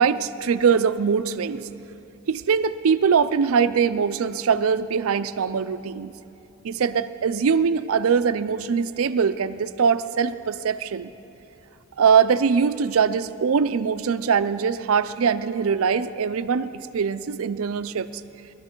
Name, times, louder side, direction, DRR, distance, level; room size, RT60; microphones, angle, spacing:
voice 1, 0.0-1.7 2.3-6.1 6.6-11.1 12.0-18.1, right 6 dB, 70° right, 13 dB, 0.4 m, -22 dB
20.5 x 12.5 x 4.5 m, 2.8 s
head